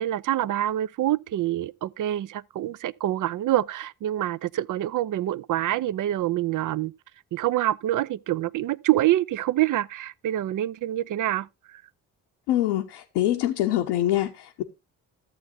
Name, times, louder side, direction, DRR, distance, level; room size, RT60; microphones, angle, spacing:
voice 1, 0.0-6.9 7.3-11.8, right 13 dB, 45° right, 0.5 m, -26 dB
voice 2, 12.5-14.6, left 13 dB, 80° left, 0.9 m, -24 dB
14.0 x 7.9 x 2.7 m
hypercardioid pair, 45°, 46 cm